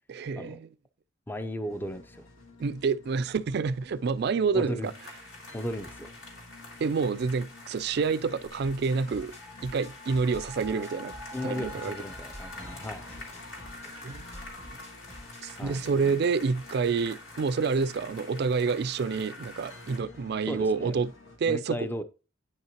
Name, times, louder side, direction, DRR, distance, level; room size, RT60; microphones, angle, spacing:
voice 1, 0.1-0.7 2.6-4.9 6.8-9.3 9.6-11.1 11.4-12.0 14.0-14.2 15.4-21.1 21.4-21.9, right 5 dB, 50° right, 0.3 m, -28 dB
voice 2, 1.3-2.3 4.5-4.9 5.5-6.1 11.3-13.1 15.6-16.2 20.5-21.0 21.5-22.0, equal, 10° left, 0.5 m, -36 dB
sound 1, 1.6-21.4, left 3 dB, 80° left, 2.2 m, -52 dB
sound 2, 4.8-20.0, left 2 dB, 65° left, 2.9 m, -46 dB
sound 3, 8.4-15.9, equal, 30° left, 1.9 m, -49 dB
9.4 x 5.5 x 2.9 m
head